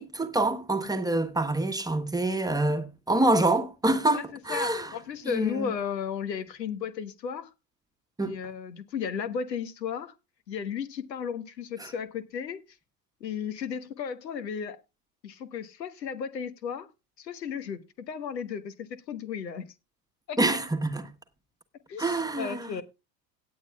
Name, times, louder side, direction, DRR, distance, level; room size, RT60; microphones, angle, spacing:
voice 1, 0.0-4.9 5.2-5.7 8.2-8.4 11.8-11.9 20.4-21.0 22.0-22.7, right 2 dB, 5° right, 1.2 m, -26 dB
voice 2, 4.5-7.5 8.2-10.1 10.5-12.6 13.2-14.8 15.2-16.9 17.2-19.7 20.3-20.4 21.9-22.8, left 7 dB, 75° left, 1.3 m, -34 dB
18.0 x 8.5 x 2.3 m
figure-of-eight pair, 80°, 50 cm